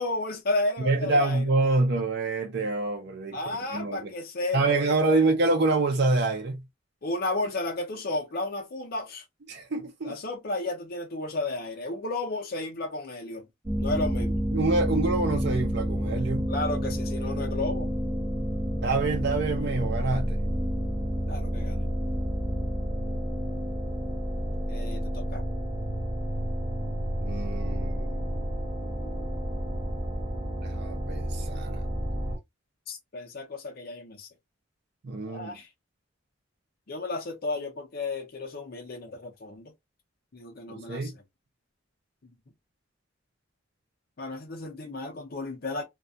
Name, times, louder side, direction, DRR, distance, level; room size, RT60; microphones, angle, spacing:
voice 1, 0.0-1.4 3.3-5.2 7.0-9.2 10.0-13.5 13.8-14.4 16.5-17.9 21.3-21.9 24.7-25.4 32.9-34.3 35.3-35.7 36.9-39.7 40.3-41.1 44.2-45.8, left 2 dB, 55° left, 0.6 m, -33 dB
voice 2, 0.8-3.4 3.7-4.1 4.5-6.6 9.5-10.2 14.5-16.5 18.8-20.4 27.2-28.2 30.6-31.8 35.0-35.6 40.7-41.1, right 3 dB, 60° right, 0.5 m, -26 dB
sound 1, 13.7-32.4, equal, 10° right, 1.3 m, -30 dB
2.3 x 2.2 x 2.6 m
head